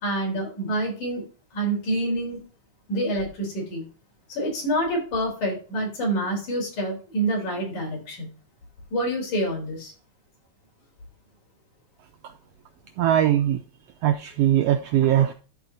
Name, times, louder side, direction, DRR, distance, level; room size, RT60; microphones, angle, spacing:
voice 1, 0.0-1.2 1.5-2.4 2.9-3.8 4.3-8.3 8.9-9.9, right 1 dB, 85° left, -1 dB, 5.4 m, -27 dB
voice 2, 13.0-13.6 14.0-15.3, right 11 dB, 85° right, 7 dB, 1.4 m, -20 dB
13.0 x 4.3 x 4.0 m, 0.36 s
omnidirectional pair, 3.4 m